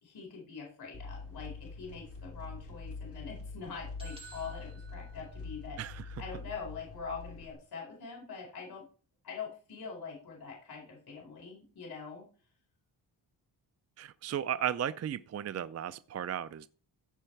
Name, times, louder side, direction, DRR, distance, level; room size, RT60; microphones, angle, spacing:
voice 1, 0.0-5.8 6.2-8.9 9.2-12.3, left 5 dB, 55° left, 4.5 m, -44 dB
sound 1, 0.9-7.5, left 4 dB, 30° left, 4.1 m, -44 dB
sound 2, 4.0-5.9, right 4 dB, 10° right, 3.1 m, -54 dB
voice 2, 14.0-16.7, right 9 dB, 35° right, 0.4 m, -35 dB
15.0 x 5.4 x 4.6 m
wide cardioid pair, 135°, 46 cm